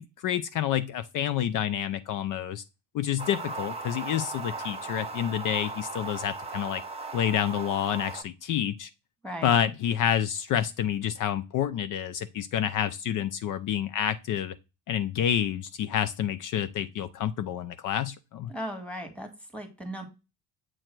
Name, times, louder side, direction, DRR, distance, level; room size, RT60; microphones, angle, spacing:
voice 1, 0.0-2.6 2.9-6.8 7.1-8.9 9.4-14.5 14.9-18.5, left 10 dB, 60° left, 0.6 m, -28 dB
sound 1, 3.2-8.2, right 3 dB, 15° right, 1.0 m, -37 dB
voice 2, 18.5-20.1, equal, 5° left, 1.7 m, -37 dB
7.7 x 2.8 x 4.5 m
cardioid pair, 100°, 35 cm